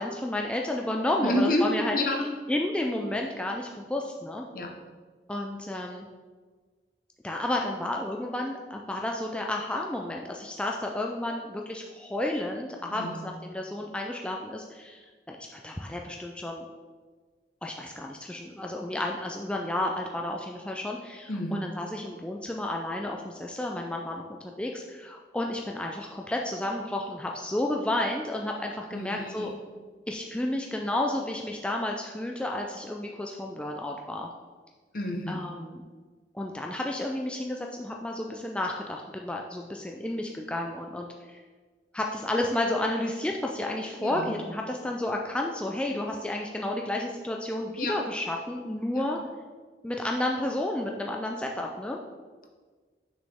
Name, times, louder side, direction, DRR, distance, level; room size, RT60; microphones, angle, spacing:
voice 1, 0.0-2.0 2.5-4.4 5.3-6.1 7.2-16.7 17.6-29.5 30.1-34.3 35.3-35.8 36.3-41.4 41.9-49.2 49.8-52.0, left 1 dB, 5° left, 0 dB, 0.3 m, -31 dB
voice 2, 1.2-2.3 4.5-4.7 12.9-13.3 21.3-21.6 28.9-29.5 34.9-35.4 44.0-44.4 47.8-48.0 48.9-49.0, left 1 dB, 50° left, 2 dB, 0.9 m, -29 dB
6.3 x 6.2 x 3.5 m, 1.4 s
head